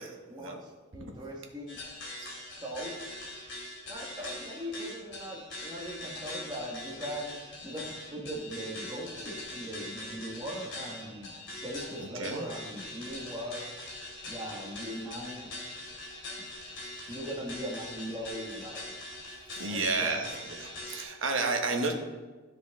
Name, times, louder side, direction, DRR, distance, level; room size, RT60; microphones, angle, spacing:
voice 1, 0.3-1.8 2.6-3.0 3.9-11.3 11.6-13.7 14.2-15.5 17.1-19.0 19.7-20.2, equal, 20° right, -2 dB, 1.4 m, -40 dB
sound 1, 1.7-21.0, left 1 dB, 60° left, 2.7 m, -42 dB
voice 2, 12.0-12.5 17.0-17.1 19.5-21.9, right 3 dB, 80° right, 3 dB, 1.1 m, -32 dB
12.0 x 4.8 x 3.5 m, 1.3 s
head